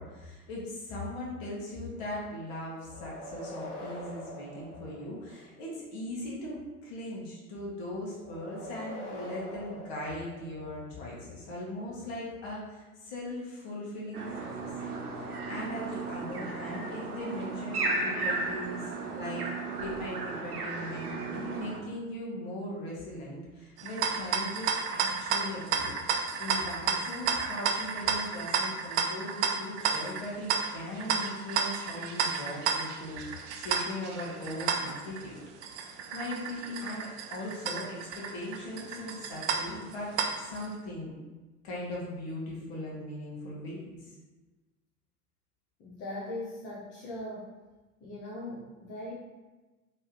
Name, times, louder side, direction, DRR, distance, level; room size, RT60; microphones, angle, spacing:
voice 1, 0.0-19.4 19.8-26.0 26.4-35.4 36.1-41.1 41.6-44.1, left 1 dB, 45° left, -4 dB, 1.4 m, -39 dB
sound 1, 2.8-5.6 8.2-10.9, equal, 80° left, 1.0 m, -44 dB
sound 2, 14.1-21.8, right 3 dB, 80° right, 0.8 m, -35 dB
sound 3, 23.8-40.7, right 6 dB, 50° right, 0.5 m, -32 dB
voice 2, 45.8-47.5 48.0-49.1, left 1 dB, 25° left, -6 dB, 0.7 m, -40 dB
3.5 x 3.2 x 2.9 m, 1.2 s
figure-of-eight pair, 90°, 45 cm